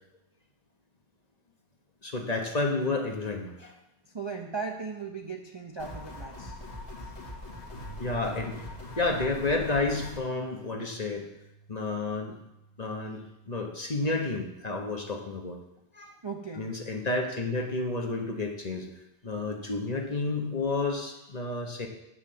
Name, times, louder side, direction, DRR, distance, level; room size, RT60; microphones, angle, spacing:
voice 1, 2.0-3.7 8.0-8.6 8.9-11.3 11.7-12.4 12.8-15.6 15.9-16.1 16.5-18.9 19.2-21.9, left 3 dB, 35° left, 2 dB, 1.2 m, -30 dB
voice 2, 4.1-6.6 16.2-16.6, right 5 dB, 30° right, 2 dB, 0.6 m, -37 dB
sound 1, 5.8-10.2, left 1 dB, 70° left, 2.0 m, -42 dB
sound 2, 7.7-14.0, right 4 dB, 90° right, 1.6 m, -52 dB
7.4 x 6.3 x 7.5 m, 0.89 s
omnidirectional pair, 1.2 m